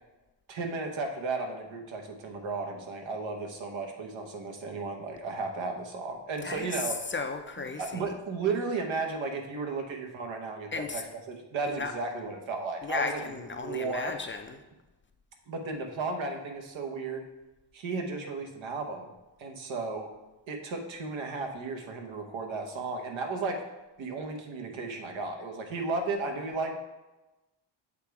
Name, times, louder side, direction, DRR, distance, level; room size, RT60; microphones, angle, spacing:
voice 1, 0.5-7.0 7.8-13.2 13.6-14.1 15.5-17.3 17.7-19.1 19.4-20.1 20.5-23.6 24.0-26.7, right 3 dB, 80° right, 4 dB, 1.1 m, -34 dB
voice 2, 6.4-8.1 10.7-11.0 11.7-11.9 12.8-14.6, left 4 dB, 25° left, 5 dB, 0.4 m, -35 dB
7.5 x 3.4 x 4.7 m, 1.1 s
cardioid pair, 125°, 46 cm